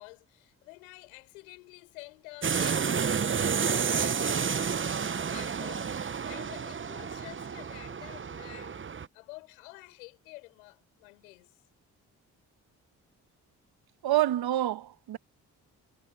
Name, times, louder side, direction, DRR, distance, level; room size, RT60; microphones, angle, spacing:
voice 1, 0.0-6.0 6.3-8.8 9.1-11.6, left 24 dB, 85° left, 5.4 m, -49 dB
sound 1, 2.4-9.1, right 6 dB, 30° right, 1.0 m, -30 dB
voice 2, 14.0-15.2, right 14 dB, 60° right, 1.6 m, -27 dB
hypercardioid pair, 40°, 41 cm